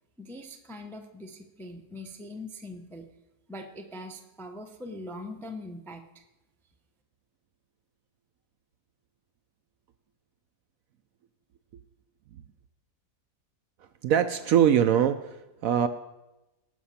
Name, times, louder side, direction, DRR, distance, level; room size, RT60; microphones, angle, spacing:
voice 1, 0.2-3.1 3.5-6.0, left 1 dB, ahead, 4 dB, 0.5 m, -42 dB
voice 2, 14.0-15.9, right 9 dB, 70° right, 10 dB, 0.9 m, -22 dB
18.5 x 6.3 x 5.7 m, 1.0 s
omnidirectional pair, 1.8 m